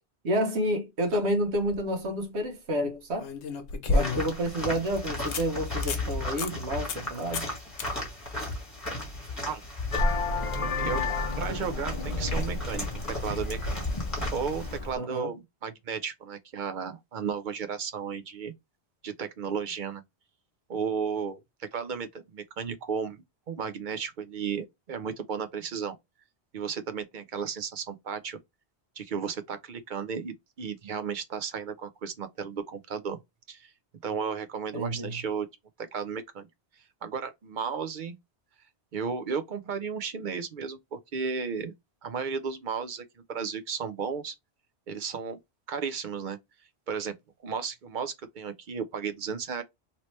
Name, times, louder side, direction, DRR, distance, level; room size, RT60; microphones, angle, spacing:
voice 1, 0.2-3.3 3.9-7.4 14.9-15.3 34.7-35.2, equal, 75° right, 1.2 m, -29 dB
sound 1, 1.4-1.8 3.2-4.5 4.9-5.0 5.3-5.4 5.8-6.1 6.4-6.5 6.9-7.1 7.3-7.5 7.8-7.9 11.0-11.1, left 3 dB, 90° left, 1.0 m, -30 dB
sound 2, 3.9-14.8, left 2 dB, 15° left, 1.7 m, -35 dB
Vehicle horn car horn honking, 9.9-14.9, left 2 dB, 40° left, 0.5 m, -31 dB
voice 2, 10.6-11.0 11.4-13.8 14.3-18.5 19.0-20.0 20.7-26.0 26.5-28.4 29.0-33.2 33.5-33.7 34.0-35.5 35.8-36.5 37.0-38.1 38.9-41.7 42.0-44.3 44.9-45.4 45.7-46.4 46.9-47.1 47.4-49.6, right 6 dB, 55° right, 0.6 m, -34 dB
3.1 x 2.8 x 3.1 m
omnidirectional pair, 1.1 m